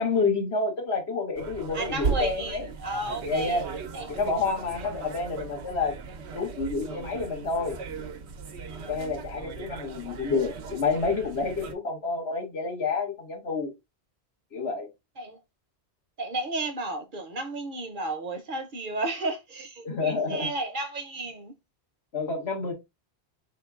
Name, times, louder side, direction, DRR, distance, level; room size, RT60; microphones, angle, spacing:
voice 1, 0.0-2.7 3.2-3.7 4.1-5.9 6.3-7.8 8.9-13.7 14.5-14.9 19.8-20.5 22.1-22.7, left 4 dB, 75° left, 1.6 m, -29 dB
sound 1, 1.3-11.7, right 5 dB, 80° right, 1.0 m, -37 dB
voice 2, 1.7-3.6 3.9-4.2 6.4-6.5 8.6-9.0 15.2-15.4 16.2-21.5, right 2 dB, 55° right, 0.8 m, -33 dB
4.6 x 3.7 x 2.3 m
omnidirectional pair, 1.1 m